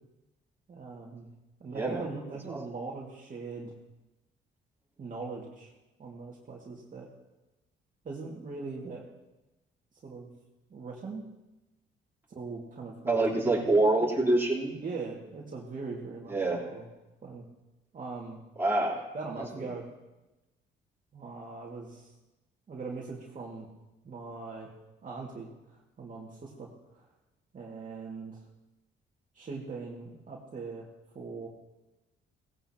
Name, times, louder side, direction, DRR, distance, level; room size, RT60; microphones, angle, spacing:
voice 1, 0.7-1.3 1.6-3.7 5.0-5.7 6.0-7.1 8.0-9.1 10.0-10.3 10.7-11.3 12.3-13.1 13.4-14.1 14.8-16.9 17.2-17.4 17.9-18.4 19.1-19.8 21.1-22.1 22.7-23.7 24.0-24.7 25.0-25.5 26.0-26.7 26.9-27.0 27.5-28.4 29.3-30.9 31.1-31.5, right 4 dB, 40° right, -3 dB, 2.2 m, -40 dB
voice 2, 1.7-2.1 2.5-2.6 13.1-14.8 16.3-16.7 18.6-19.0, right 2 dB, 10° right, -4 dB, 3.7 m, -26 dB
17.5 x 16.5 x 3.0 m, 1.0 s
cardioid pair, 90°, 20 cm